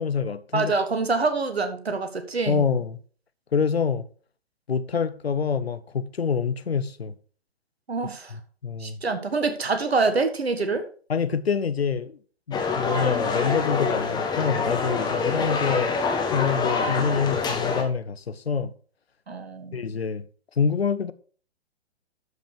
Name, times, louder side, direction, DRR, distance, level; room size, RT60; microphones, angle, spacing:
voice 1, 0.0-0.7 2.5-3.0 3.5-4.1 4.7-7.1 8.3-9.0 11.1-12.2 12.5-16.0 16.3-18.7 19.7-20.2 20.6-21.1, left 6 dB, 75° left, 1.0 m, -26 dB
voice 2, 0.5-2.7 7.9-8.3 8.8-10.9 19.3-19.8, right 4 dB, 75° right, 1.5 m, -25 dB
sound 1, 12.5-17.8, left 4 dB, 15° left, 1.6 m, -26 dB
12.5 x 5.1 x 4.9 m
figure-of-eight pair, 120°, 31 cm